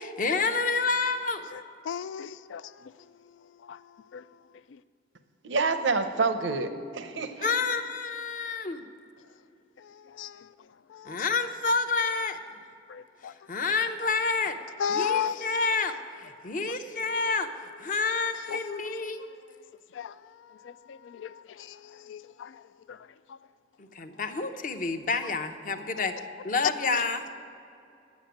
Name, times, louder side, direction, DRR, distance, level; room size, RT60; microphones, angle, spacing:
voice 1, 0.0-1.5 7.4-8.8 11.0-12.4 13.2-14.6 14.9-19.2 23.8-26.1 26.4-27.2, left 4 dB, 45° left, 8 dB, 0.7 m, -29 dB
voice 2, 1.9-2.9 3.6-3.8 4.1-4.2 4.7-4.8 9.8-10.5 10.9-11.2 12.9-13.3 14.8-15.5 16.6-17.2 18.5-19.1 19.9-20.1 20.4-22.6 22.9-23.0 23.3-23.4 25.7-26.3 26.9-27.0, left 8 dB, 90° left, 17 dB, 0.3 m, -36 dB
voice 3, 5.4-7.5, right 4 dB, 85° right, 9 dB, 0.7 m, -27 dB
9.3 x 7.2 x 9.1 m, 2.6 s
head